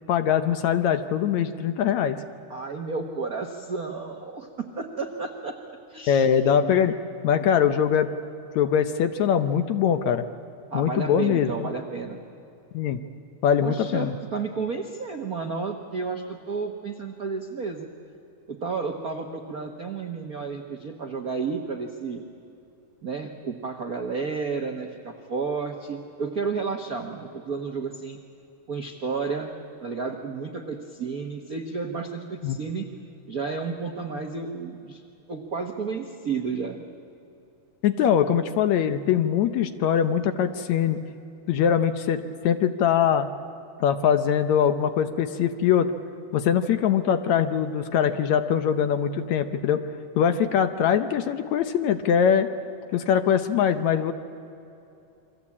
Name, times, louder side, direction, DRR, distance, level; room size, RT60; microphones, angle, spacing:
voice 1, 0.1-2.2 6.1-6.9 7.2-8.1 8.6-10.2 10.7-11.7 12.7-13.0 13.4-14.1 32.4-32.6 37.8-41.0 41.5-43.3 43.8-45.9 46.3-49.8 50.2-52.5 52.9-54.1, left 8 dB, 70° left, 10 dB, 1.9 m, -22 dB
voice 2, 2.5-6.3 6.6-6.8 10.7-12.2 13.6-17.9 18.5-22.2 23.0-28.2 28.7-29.5 29.8-32.9 33.3-35.0 35.3-36.8, right 4 dB, 75° right, 4 dB, 0.8 m, -32 dB
29.0 x 23.5 x 8.5 m, 2.7 s
omnidirectional pair, 3.8 m